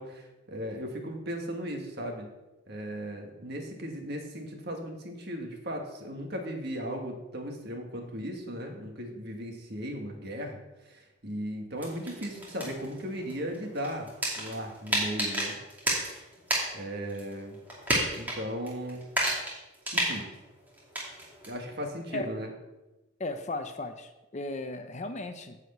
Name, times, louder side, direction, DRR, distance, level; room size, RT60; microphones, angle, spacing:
voice 1, 0.0-2.3 2.7-10.6 10.9-14.1 14.4-15.6 16.7-17.6 18.2-19.1 19.9-20.3 21.5-22.5, equal, 50° right, 2 dB, 1.7 m, -37 dB
sound 1, 11.8-16.8 17.1-18.4 18.6-21.5, right 1 dB, 10° right, 2.4 m, -32 dB
voice 2, 23.2-25.6, left 2 dB, 35° left, 8 dB, 0.6 m, -36 dB
9.8 x 4.9 x 7.9 m, 1.0 s
head